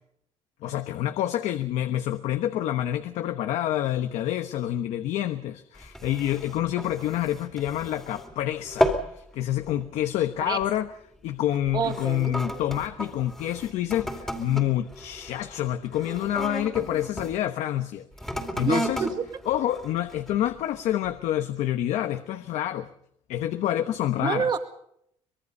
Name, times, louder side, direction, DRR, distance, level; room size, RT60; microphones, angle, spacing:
voice 1, 0.6-10.9 11.2-18.1 18.3-19.0 19.5-22.9 23.3-24.5, left 12 dB, 75° left, 9 dB, 1.1 m, -28 dB
sound 1, 5.7-8.3 8.6-9.2 9.5-9.9 10.5-10.8 11.5-17.3 18.1-20.5 21.0-21.1, equal, 5° left, 2.5 m, -33 dB
voice 2, 11.7-12.3 18.6-19.1 24.2-24.6, right 6 dB, 40° right, 7 dB, 2.1 m, -27 dB
24.5 x 21.5 x 5.5 m, 0.72 s
cardioid pair, 160°, 12 cm